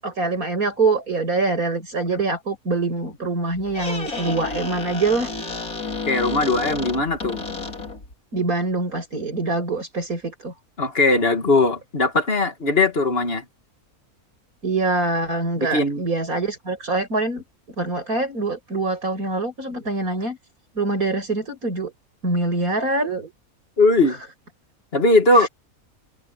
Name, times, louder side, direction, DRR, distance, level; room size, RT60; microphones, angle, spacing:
voice 1, 0.0-5.3 8.3-10.5 14.6-17.4 17.8-20.4 20.8-21.9 22.2-23.3 24.1-24.2 25.3-25.5, right 3 dB, 80° right, 7.5 m, -24 dB
Squeak, 3.5-8.1, left 3 dB, 80° left, 4.9 m, -31 dB
voice 2, 6.1-7.4 10.8-13.4 15.6-16.0 23.8-24.2 24.9-25.5, left 2 dB, 40° left, 2.5 m, -19 dB
omnidirectional pair, 1.5 m